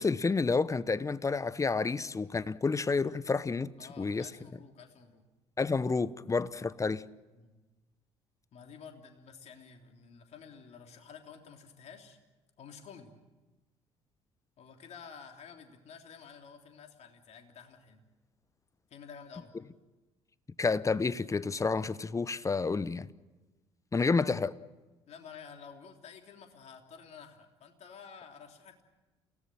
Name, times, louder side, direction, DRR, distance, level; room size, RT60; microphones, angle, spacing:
voice 1, 0.0-4.3 5.6-7.0 20.6-23.1 23.9-24.5, left 4 dB, 20° left, 0.9 m, -30 dB
voice 2, 3.8-5.2 7.3-7.5 8.5-12.2 12.6-13.1 14.6-18.0 18.9-19.5 25.1-28.8, left 6 dB, 50° left, 3.4 m, -51 dB
28.5 x 18.0 x 7.6 m
hypercardioid pair, 55°, 14 cm